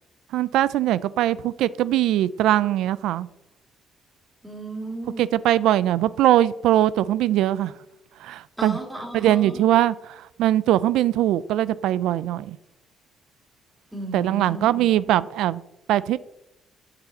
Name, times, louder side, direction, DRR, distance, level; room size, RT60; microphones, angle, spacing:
voice 1, 0.3-3.3 5.2-7.7 8.2-8.8 9.1-12.6 14.1-15.6 15.9-16.2, right 13 dB, 90° right, 0.3 m, -21 dB
voice 2, 4.4-5.3 8.6-9.7 13.9-14.9, right 2 dB, 10° right, 2.4 m, -34 dB
8.0 x 6.9 x 4.2 m
cardioid pair, 90°, 0 cm